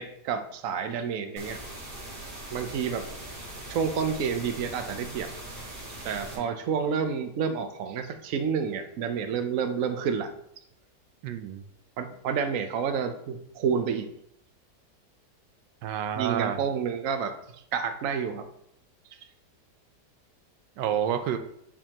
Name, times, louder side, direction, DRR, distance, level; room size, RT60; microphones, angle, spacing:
voice 1, 0.0-1.6 2.5-3.1 3.7-5.3 6.0-10.3 12.0-14.1 16.2-18.5, right 6 dB, 60° right, 7 dB, 1.0 m, -29 dB
sound 1, 1.4-6.4, right 1 dB, 30° right, 2.2 m, -41 dB
voice 2, 11.2-11.6 15.8-16.6 20.8-21.4, right 9 dB, 90° right, 8 dB, 1.3 m, -29 dB
9.8 x 4.5 x 2.9 m, 0.74 s
omnidirectional pair, 1.8 m